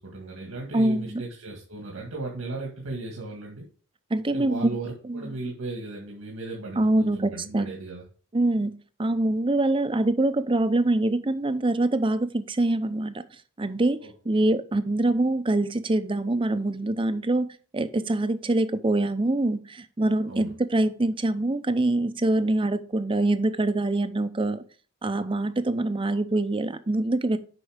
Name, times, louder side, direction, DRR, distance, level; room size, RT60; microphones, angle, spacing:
voice 1, 0.0-3.6 4.3-8.0 14.0-14.4 20.3-20.5, right 2 dB, 90° right, 0 dB, 1.9 m, -36 dB
voice 2, 0.7-1.2 4.1-4.8 5.1-5.2 6.8-7.7 8.3-8.7 9.0-13.2 13.6-17.5 17.7-24.6 25.0-27.4, right 2 dB, 25° right, 12 dB, 0.6 m, -24 dB
8.0 x 5.4 x 5.0 m, 0.41 s
head